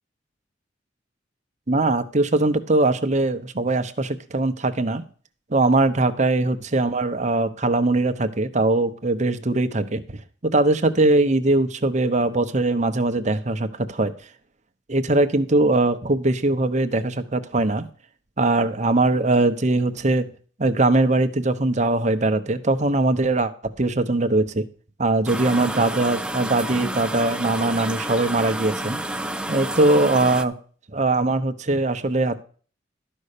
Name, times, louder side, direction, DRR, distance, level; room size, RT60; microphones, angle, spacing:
voice 1, 1.7-5.0 5.5-14.1 14.9-17.9 18.4-20.3 20.6-23.5 23.8-24.6 25.0-29.0 29.5-30.5 30.9-32.4, right 2 dB, 40° right, 9 dB, 1.0 m, -21 dB
sound 1, 25.3-30.4, right 1 dB, 5° right, 0.5 m, -30 dB
12.5 x 5.5 x 6.7 m, 0.42 s
head